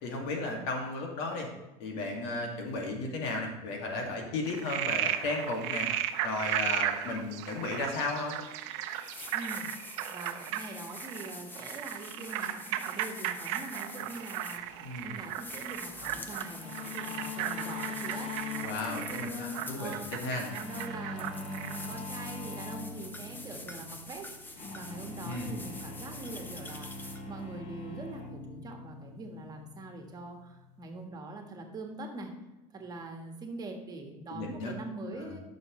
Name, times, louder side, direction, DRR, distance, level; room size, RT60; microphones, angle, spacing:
voice 1, 0.0-1.5 1.8-5.9 6.2-8.4 14.8-15.1 18.6-20.5 25.2-25.6 34.3-34.7 35.1-35.4, left 2 dB, 75° left, 1 dB, 2.3 m, -34 dB
Frog, 4.5-21.9, right 12 dB, 80° right, 0.7 m, -36 dB
sound 1, 8.4-8.5 8.9-27.6, left 2 dB, 15° left, 0.8 m, -46 dB
voice 2, 9.3-14.7 15.0-20.1 20.5-32.3 32.7-35.4, right 2 dB, 25° right, 3 dB, 1.5 m, -43 dB
sound 2, 16.6-31.0, left 4 dB, 45° left, 1.8 m, -43 dB
12.5 x 6.4 x 3.2 m, 1.1 s
supercardioid pair, 130°, 15 cm